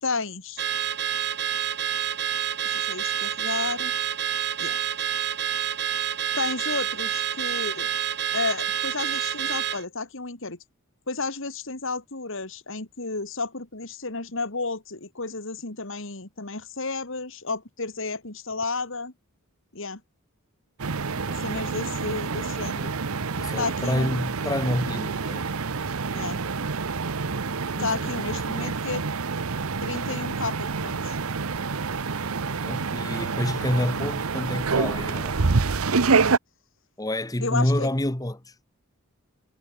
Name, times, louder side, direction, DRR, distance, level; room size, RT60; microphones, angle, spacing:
voice 1, 0.0-0.6 2.6-3.9 4.6-4.7 6.3-7.9 8.3-10.6 11.1-19.1 19.7-20.0 21.3-22.9 23.6-24.2 26.1-26.4 27.8-29.0 29.8-31.2 37.4-37.9, left 3 dB, 65° left, 2.5 m, -32 dB
Car / Alarm, 0.6-9.8, right 9 dB, 55° right, 2.7 m, -28 dB
sound 1, 20.8-36.4, right 4 dB, 85° right, 0.9 m, -27 dB
voice 2, 21.3-21.7 23.4-25.4 27.7-28.1 28.6-28.7 32.4-35.4 37.0-38.5, left 1 dB, 15° left, 1.4 m, -28 dB
head